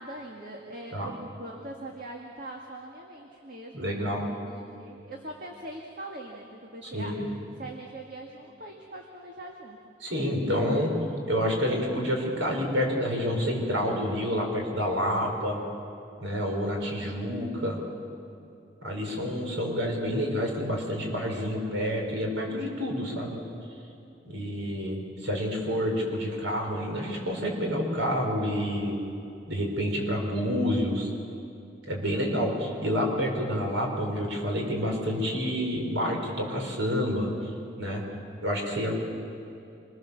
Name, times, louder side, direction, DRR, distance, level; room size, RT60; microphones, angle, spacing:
voice 1, 0.0-7.2 7.6-9.8, right 1 dB, 45° right, 0 dB, 1.9 m, -42 dB
voice 2, 3.7-4.3 6.8-7.3 10.0-10.9 11.3-15.6 16.2-17.8 18.8-23.4 24.2-29.0 29.5-31.1 31.9-37.5 37.8-38.0 38.4-39.0, equal, 75° right, 1 dB, 5.4 m, -28 dB
27.0 x 22.0 x 7.2 m, 2.7 s
head